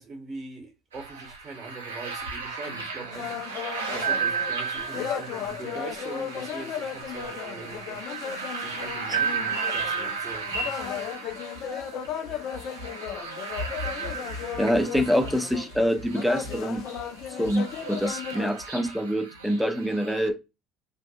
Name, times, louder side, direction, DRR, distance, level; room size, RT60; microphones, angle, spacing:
voice 1, 0.0-3.7 3.9-8.0 8.6-11.1, right 3 dB, 35° right, 0.7 m, -42 dB
sound 1, 0.9-20.3, right 5 dB, 80° right, 0.5 m, -34 dB
sound 2, 3.1-18.5, left 9 dB, 50° left, 0.4 m, -36 dB
voice 2, 14.5-16.8 17.4-20.4, equal, ahead, 0.5 m, -25 dB
2.6 x 2.1 x 2.3 m
figure-of-eight pair, 60°, 0 cm